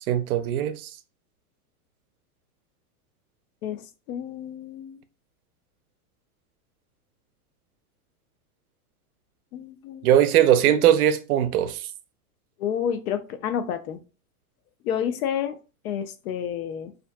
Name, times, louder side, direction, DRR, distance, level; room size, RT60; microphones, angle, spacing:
voice 1, 0.1-0.8 10.0-11.8, right 10 dB, 75° right, 0.5 m, -20 dB
voice 2, 4.1-5.0 9.5-10.1 12.6-14.0 14.8-15.5 15.8-16.9, left 8 dB, 70° left, 0.6 m, -29 dB
2.5 x 2.5 x 2.2 m
supercardioid pair, 145°, 45 cm